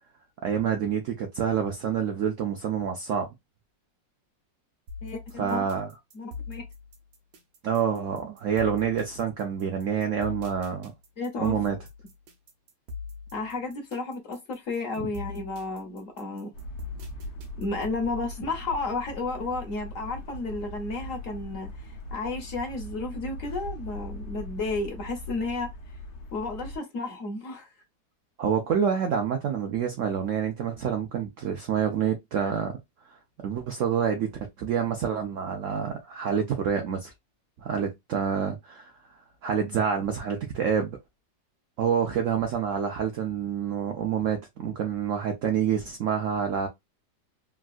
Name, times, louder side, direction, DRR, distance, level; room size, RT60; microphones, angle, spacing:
voice 1, 0.4-3.3 5.4-5.9 7.6-10.9 11.4-11.8 15.0-15.1 28.4-32.8 33.4-34.3 34.6-37.1 37.6-38.9 39.4-41.0 41.8-46.7, right 7 dB, 85° right, 0.6 m, -27 dB
sound 1, 4.9-18.0, left 5 dB, 70° right, 1.3 m, -41 dB
voice 2, 5.0-5.8 6.1-6.6 11.2-11.6 13.3-16.5 17.6-25.7 26.3-27.7, left 3 dB, 55° left, 1.0 m, -32 dB
sound 2, 16.5-26.8, left 1 dB, 80° left, 1.4 m, -40 dB
3.5 x 2.3 x 2.3 m
omnidirectional pair, 2.0 m